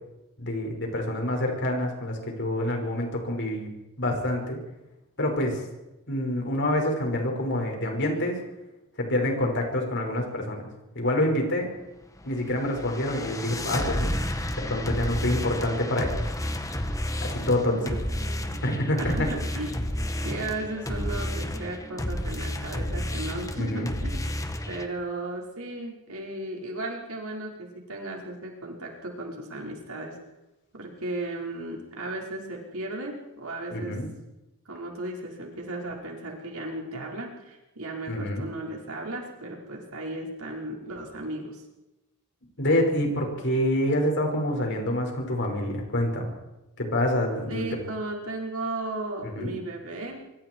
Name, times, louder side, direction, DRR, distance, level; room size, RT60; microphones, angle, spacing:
voice 1, 0.4-3.7 4.0-4.6 5.2-5.6 6.1-8.4 9.0-10.6 10.9-11.7 12.2-14.1 14.6-16.3 17.2-17.8 18.6-19.3 23.6-23.9 33.7-34.1 38.1-38.5 42.6-46.3 46.8-47.8 49.2-49.5, left 1 dB, 55° left, 2 dB, 5.9 m, -27 dB
sound 1, 12.2-24.9, left 1 dB, 15° left, 1.6 m, -31 dB
voice 2, 17.7-19.8 20.2-24.2 24.7-30.1 30.7-33.9 34.6-41.6 47.5-50.2, right 2 dB, 75° right, -1 dB, 5.2 m, -35 dB
25.0 x 24.5 x 4.8 m, 0.99 s
head